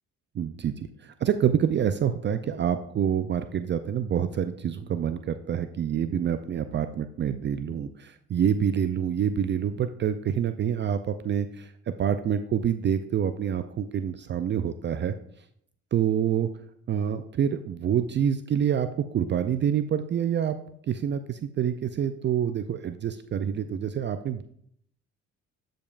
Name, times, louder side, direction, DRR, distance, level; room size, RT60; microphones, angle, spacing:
voice 1, 0.4-15.1 15.9-16.5 16.9-20.6 20.9-24.4, right 8 dB, 40° right, 10 dB, 0.4 m, -27 dB
11.5 x 5.2 x 2.4 m, 0.68 s
supercardioid pair, 80°, 29 cm